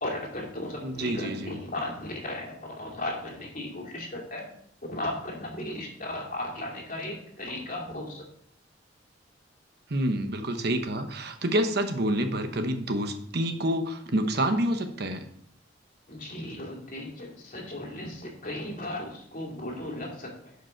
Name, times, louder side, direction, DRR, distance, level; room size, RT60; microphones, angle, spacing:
voice 1, 0.0-4.5 4.9-8.2 16.1-20.5, left 1 dB, 45° left, -1 dB, 2.5 m, -36 dB
voice 2, 0.8-1.6 9.9-15.2, right 1 dB, 60° right, 6 dB, 1.0 m, -28 dB
11.0 x 5.2 x 4.5 m, 0.67 s
head